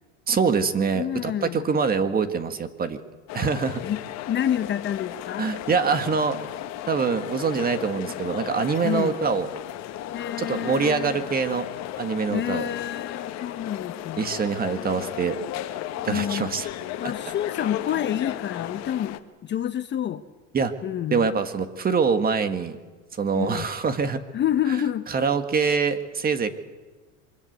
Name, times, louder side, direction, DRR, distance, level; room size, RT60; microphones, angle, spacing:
voice 1, 0.3-3.0 3.3-3.8 5.4-6.4 6.9-9.5 10.4-11.7 12.0-12.6 14.2-15.4 16.0-16.7 17.0-17.1 20.5-20.7 21.1-22.8 23.2-24.2 25.1-26.5, right 5 dB, 25° right, 9 dB, 1.7 m, -24 dB
voice 2, 0.9-1.7 3.8-4.0 4.3-5.5 8.8-9.2 10.1-11.3 12.3-14.3 16.1-16.5 17.0-20.2 20.8-21.3 23.3-23.7 24.3-25.1, left 10 dB, 30° left, 11 dB, 0.8 m, -28 dB
sound 1, 3.3-19.2, left 12 dB, 45° left, 1.4 m, -35 dB
24.0 x 22.0 x 8.0 m, 1.3 s
supercardioid pair, 125°, 36 cm